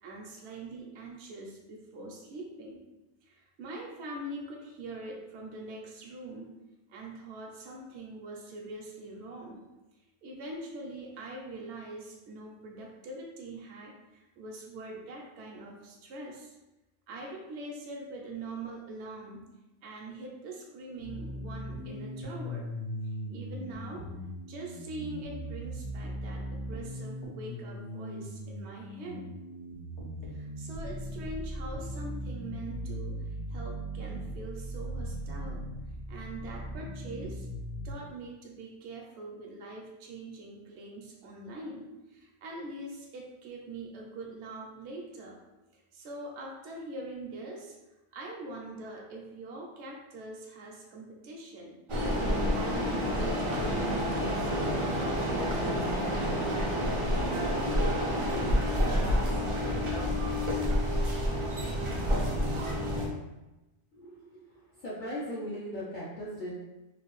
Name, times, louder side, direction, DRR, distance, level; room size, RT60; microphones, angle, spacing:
voice 1, 0.0-2.8 3.2-6.6 6.9-9.6 10.2-16.5 17.1-19.5 19.8-22.7 23.0-24.1 24.4-29.3 30.2-35.7 36.1-37.5 37.8-45.4 45.7-47.7 48.1-59.4, right 2 dB, 70° right, -1 dB, 0.8 m, -43 dB
sound 1, 21.0-37.9, equal, 90° left, 1.2 m, -39 dB
sound 2, 51.9-63.1, equal, 55° right, 0.3 m, -29 dB
voice 2, 63.9-64.4 64.8-66.5, equal, 50° left, -8 dB, 0.7 m, -38 dB
3.1 x 2.5 x 3.0 m, 1.0 s
omnidirectional pair, 1.2 m